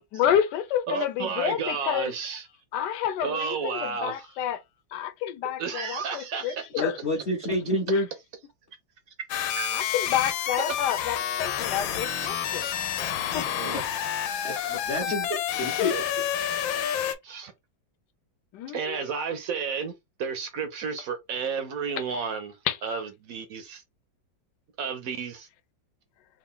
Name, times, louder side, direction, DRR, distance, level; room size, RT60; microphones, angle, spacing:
voice 1, 0.1-2.1 2.7-4.6 4.9-7.0 9.7-12.7 13.3-13.5 15.8-15.9 18.5-19.0 22.1-22.2 22.7-23.0, left 10 dB, 70° left, 1.2 m, -29 dB
voice 2, 0.9-2.5 3.2-4.3 5.6-6.7 9.6-9.8 10.7-10.8 12.1-12.4 13.4-13.8 15.1-15.2 15.8-16.0 17.2-17.5 18.7-19.9 20.2-22.6 22.8-23.8 24.8-25.5, right 6 dB, 70° right, 0.8 m, -32 dB
voice 3, 6.8-8.1 13.7-13.8 14.4-15.3 15.6-15.9, left 1 dB, 50° left, 0.9 m, -28 dB
sound 1, 9.3-17.1, left 10 dB, 85° left, 1.4 m, -29 dB
3.5 x 2.4 x 3.6 m
omnidirectional pair, 2.0 m